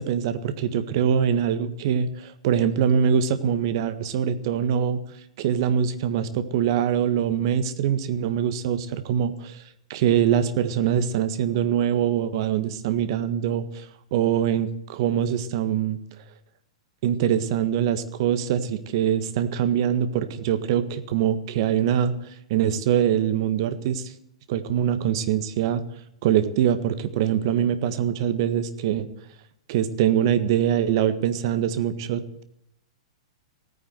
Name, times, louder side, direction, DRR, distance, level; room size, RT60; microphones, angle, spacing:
voice 1, 0.0-5.0 5.4-9.6 9.9-13.9 14.1-16.0 17.0-24.1 24.5-25.8 26.2-29.1 29.7-32.4, right 9 dB, 50° right, 12 dB, 1.6 m, -23 dB
17.0 x 9.6 x 7.9 m, 0.78 s
figure-of-eight pair, 105°, 3 cm